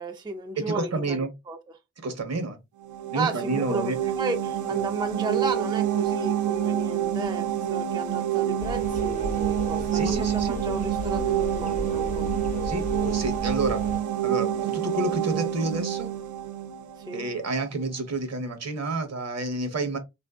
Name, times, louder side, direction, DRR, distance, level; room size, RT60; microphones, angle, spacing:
voice 1, 0.0-1.2 1.5-1.6 3.1-12.3 17.0-17.2, right 2 dB, 15° right, 0.4 m, -33 dB
voice 2, 0.6-1.3 2.0-2.6 3.1-4.0 9.9-10.6 12.6-13.8 14.2-16.1 17.1-20.0, right 2 dB, 60° right, 0.9 m, -29 dB
sound 1, 2.8-17.5, right 11 dB, 80° right, 0.5 m, -28 dB
sound 2, 8.6-14.0, left 2 dB, 25° left, 0.6 m, -35 dB
3.6 x 2.6 x 2.3 m
wide cardioid pair, 110°, 29 cm